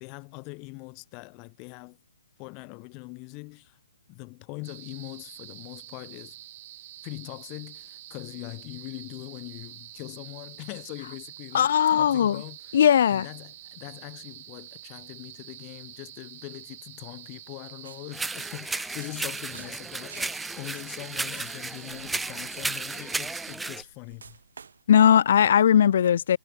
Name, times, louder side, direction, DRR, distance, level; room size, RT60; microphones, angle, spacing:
voice 1, 0.0-2.0 2.4-3.8 4.1-6.4 7.0-12.8 13.1-24.4, left 33 dB, 15° left, 1.4 m, -42 dB
sound 1, 4.6-23.6, right 14 dB, 25° right, 7.8 m, -47 dB
voice 2, 11.5-12.4 12.7-13.3 24.9-26.4, left 9 dB, 40° left, 0.6 m, -19 dB
sound 2, 17.7-24.8, right 5 dB, 70° right, 6.9 m, -52 dB
sound 3, 18.1-23.8, right 3 dB, 5° right, 1.2 m, -34 dB
hypercardioid pair, 175°, 0 cm